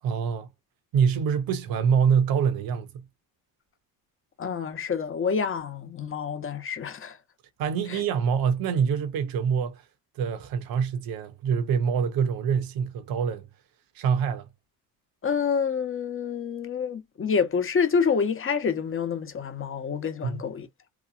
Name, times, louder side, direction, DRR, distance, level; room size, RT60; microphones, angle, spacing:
voice 1, 0.0-0.5 0.9-3.1 7.6-9.9 10.1-13.5 13.9-14.5 20.2-20.4, right 7 dB, 65° right, 0.8 m, -25 dB
voice 2, 4.4-7.2 7.9-8.0 15.2-20.7, left 6 dB, 35° left, 0.9 m, -27 dB
2.9 x 2.0 x 2.5 m
supercardioid pair, 70°, 38 cm